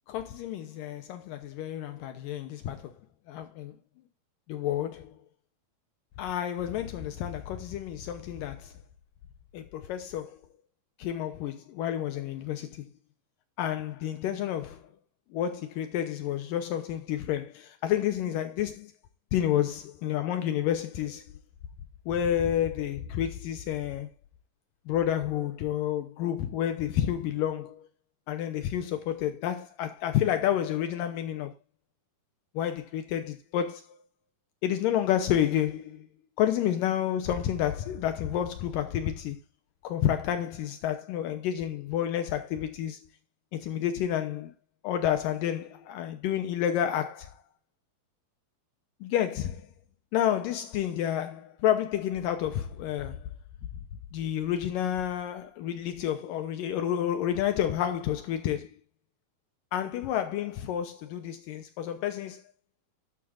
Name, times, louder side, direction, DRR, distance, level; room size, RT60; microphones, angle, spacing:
voice 1, 0.1-2.9 3.3-3.7 4.5-5.2 6.2-8.7 9.5-10.4 11.0-12.9 13.6-14.8 15.3-18.9 19.3-21.3 22.1-24.1 24.9-27.9 28.3-31.5 32.6-34.0 34.6-36.1 36.4-39.4 39.8-43.0 43.5-44.5 44.8-47.3 49.0-49.7 50.1-53.3 54.1-58.7 59.7-62.4, left 10 dB, 75° left, 2.5 m, -30 dB
13.5 x 11.5 x 2.6 m
omnidirectional pair, 4.1 m